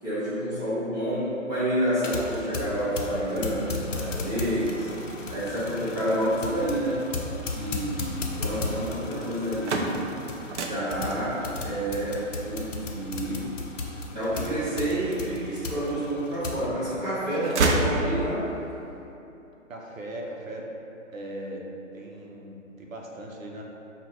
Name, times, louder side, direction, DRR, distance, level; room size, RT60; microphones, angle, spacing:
voice 1, 0.0-4.9 5.3-7.0 7.5-10.0 10.7-13.5 14.1-18.5, right 1 dB, 10° right, -13 dB, 1.2 m, -29 dB
sound 1, 1.9-16.7, left 3 dB, 70° left, 0.7 m, -36 dB
voice 2, 8.5-8.9 19.7-20.7 21.1-21.6 21.9-23.6, right 1 dB, 85° right, -1 dB, 0.9 m, -39 dB
sound 2, 9.5-15.3 15.9-16.7 17.0-18.6, right 2 dB, 60° right, 0.5 m, -30 dB
5.6 x 2.5 x 3.1 m, 2.9 s
hypercardioid pair, 150°, 39 cm